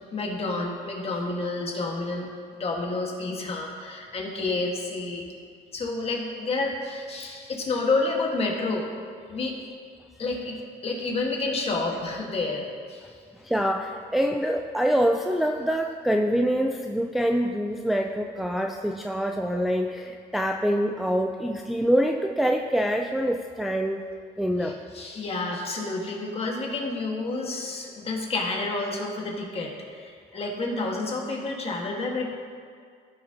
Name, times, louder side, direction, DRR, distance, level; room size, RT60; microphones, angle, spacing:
voice 1, 0.0-2.3 2.5-5.3 5.7-8.9 9.3-9.7 10.2-13.0 24.6-32.3, left 3 dB, 35° left, 0 dB, 1.7 m, -29 dB
voice 2, 13.4-24.0 24.4-24.8, equal, ahead, 2 dB, 0.4 m, -25 dB
15.0 x 6.4 x 2.9 m, 2.2 s
cardioid pair, 110°, 17 cm